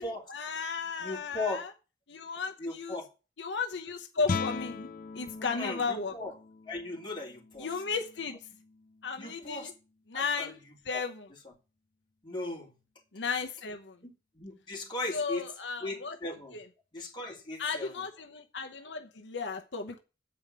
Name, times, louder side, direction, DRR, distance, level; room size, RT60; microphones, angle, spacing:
voice 1, 0.0-1.7 2.1-3.0 3.4-4.9 5.1-6.1 7.6-8.4 9.0-9.7 10.1-10.6 10.8-11.3 13.1-14.0 15.1-16.2 16.5-16.7 17.6-20.0, left 5 dB, 80° left, 0.9 m, -35 dB
voice 2, 1.0-1.6 2.6-3.1 5.4-6.3 6.7-7.7 9.2-9.7 10.1-10.5 10.9-11.0 12.2-12.7 14.0-14.1 14.4-15.4 15.8-16.6 16.9-17.9, left 2 dB, 25° left, 2.9 m, -37 dB
Guitar, 4.2-9.8, left 4 dB, 50° left, 0.5 m, -40 dB
8.0 x 5.1 x 7.4 m
head